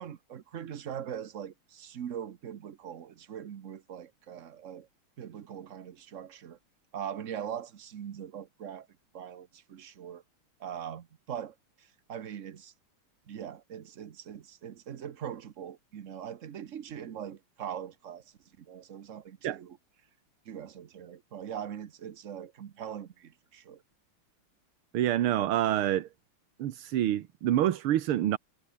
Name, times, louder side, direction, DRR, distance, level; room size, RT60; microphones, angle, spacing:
voice 1, 0.0-4.9 5.2-6.6 6.9-8.9 9.1-10.2 10.6-12.7 13.3-18.2 18.6-19.8 20.4-23.8, right 9 dB, 50° right, 0.9 m, -41 dB
voice 2, 24.9-26.1 26.6-28.4, right 12 dB, 75° right, 1.9 m, -27 dB
omnidirectional pair, 2.4 m